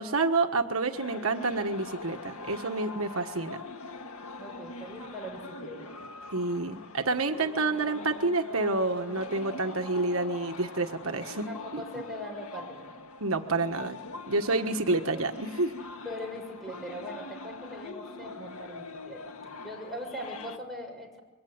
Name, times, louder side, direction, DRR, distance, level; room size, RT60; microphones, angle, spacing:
voice 1, 0.0-3.6 6.3-11.5 11.7-11.8 13.2-14.0 14.3-15.8, right 3 dB, 75° right, 5 dB, 1.4 m, -28 dB
sound 1, 0.9-20.6, left 3 dB, 85° left, 1.9 m, -43 dB
voice 2, 4.4-6.0 11.5-12.9 16.0-19.2 19.6-21.2, equal, ahead, 2 dB, 6.5 m, -41 dB
26.0 x 23.5 x 9.5 m, 1.1 s
head